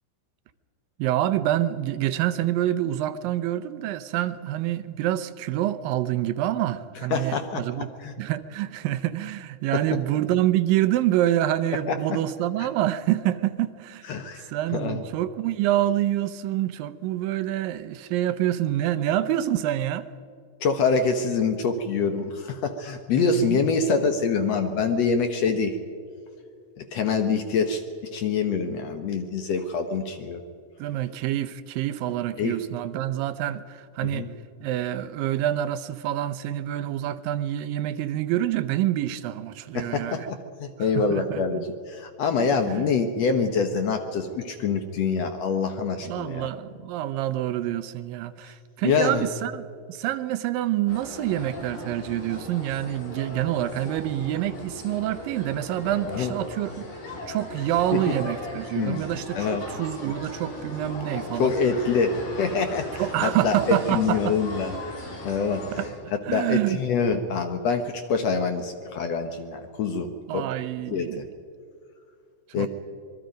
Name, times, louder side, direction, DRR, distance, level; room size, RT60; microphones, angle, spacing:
voice 1, 1.0-7.9 8.2-14.0 14.5-20.1 23.2-23.6 30.8-34.3 34.6-40.3 41.0-41.7 42.6-42.9 46.0-56.8 57.3-61.5 63.0-64.4 65.7-65.9 66.3-66.8 70.3-71.2 72.6-72.7, right 13 dB, 90° right, 12 dB, 2.5 m, -27 dB
voice 2, 7.1-7.6 8.0-8.1 9.7-9.8 14.1-14.5 14.7-15.0 20.6-25.8 26.9-27.8 28.1-30.4 32.4-32.6 34.0-34.3 39.7-46.5 48.8-49.3 56.1-56.3 57.9-58.0 58.8-59.0 59.4-59.7 61.3-64.8 65.2-65.6 66.3-70.1 70.3-70.4 70.9-71.2 72.5-72.7, left 5 dB, 65° left, 6 dB, 1.9 m, -25 dB
sound 1, 50.9-65.9, left 2 dB, 90° left, 5.6 m, -38 dB
26.0 x 21.5 x 5.2 m, 2.3 s
omnidirectional pair, 3.9 m